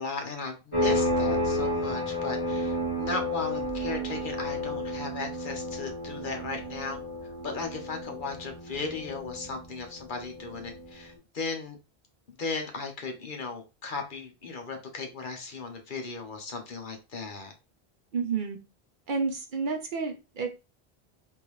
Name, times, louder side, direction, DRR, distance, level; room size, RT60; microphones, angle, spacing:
voice 1, 0.0-7.0 7.4-11.8 12.4-17.5, left 4 dB, 55° left, 4 dB, 0.9 m, -36 dB
sound 1, 0.7-11.0, left 1 dB, 30° left, 1.4 m, -31 dB
voice 2, 18.1-18.6 19.1-20.5, right 5 dB, 55° right, 3 dB, 0.8 m, -30 dB
3.6 x 2.5 x 3.1 m, 0.28 s
omnidirectional pair, 1.0 m